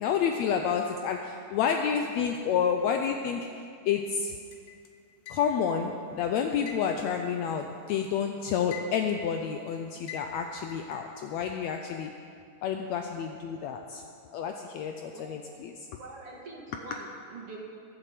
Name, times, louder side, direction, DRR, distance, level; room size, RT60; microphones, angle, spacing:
voice 1, 0.0-4.3 5.3-12.1 12.6-14.0 14.3-15.7, left 7 dB, 90° left, 4 dB, 1.5 m, -29 dB
sound 1, 4.5-5.8 6.7-8.1 8.4-9.3 10.1-11.0, left 6 dB, 65° left, 1.5 m, -44 dB
voice 2, 15.1-15.4 16.0-17.7, right 3 dB, 50° right, -2 dB, 2.3 m, -44 dB
21.5 x 7.6 x 5.0 m, 2.4 s
omnidirectional pair, 3.7 m